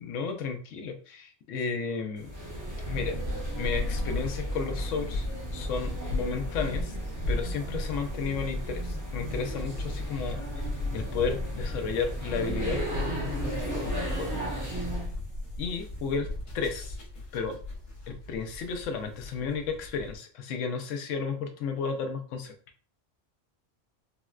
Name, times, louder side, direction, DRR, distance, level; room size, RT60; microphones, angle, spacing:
voice 1, 0.0-2.3 2.9-3.2 3.6-5.3 5.5-6.9 7.3-10.4 10.9-14.3 15.6-17.0 17.3-17.6 18.1-22.5, left 5 dB, 85° left, 6 dB, 0.9 m, -33 dB
sound 1, 2.2-15.1, right 1 dB, 15° right, 0.8 m, -35 dB
sound 2, 2.8-20.2, left 2 dB, 45° left, 1.0 m, -37 dB
3.9 x 2.1 x 2.4 m, 0.42 s
omnidirectional pair, 1.3 m